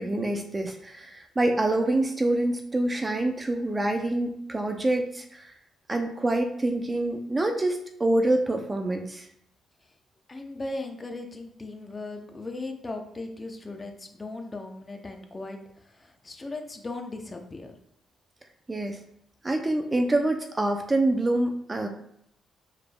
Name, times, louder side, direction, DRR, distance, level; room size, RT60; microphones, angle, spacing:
voice 1, 0.0-5.5 5.9-9.3 18.7-19.0 19.4-21.9, right 2 dB, 20° right, 4 dB, 0.4 m, -26 dB
voice 2, 10.3-17.8, left 2 dB, 25° left, 4 dB, 0.6 m, -38 dB
4.9 x 3.3 x 2.2 m, 0.72 s
cardioid pair, 90°, 0 cm